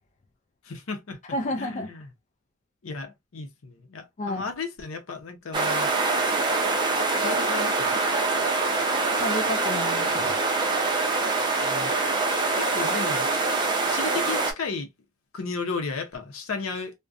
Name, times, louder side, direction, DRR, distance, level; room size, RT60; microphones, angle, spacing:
voice 1, 0.7-1.2 1.6-2.1 2.8-5.9 7.2-7.9 11.6-11.9 12.5-13.3 13.9-14.9 15.3-17.0, left 4 dB, 75° left, 0.6 m, -34 dB
voice 2, 1.3-1.9 4.2-4.5 9.2-10.4, left 1 dB, 35° left, 0.4 m, -31 dB
sound 1, 5.5-14.5, right 3 dB, 20° right, 0.5 m, -24 dB
2.4 x 2.1 x 2.4 m
head